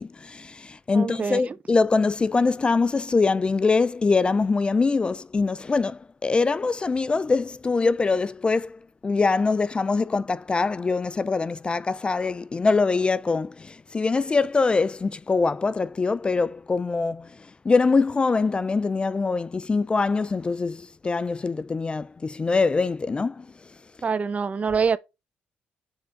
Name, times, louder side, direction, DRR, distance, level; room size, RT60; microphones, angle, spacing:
voice 1, 0.0-17.3 17.7-23.4, left 4 dB, 25° left, 0.3 m, -23 dB
voice 2, 0.9-1.6 24.0-25.0, right 5 dB, 35° right, 0.6 m, -25 dB
7.1 x 3.5 x 5.1 m
supercardioid pair, 75°, 4 cm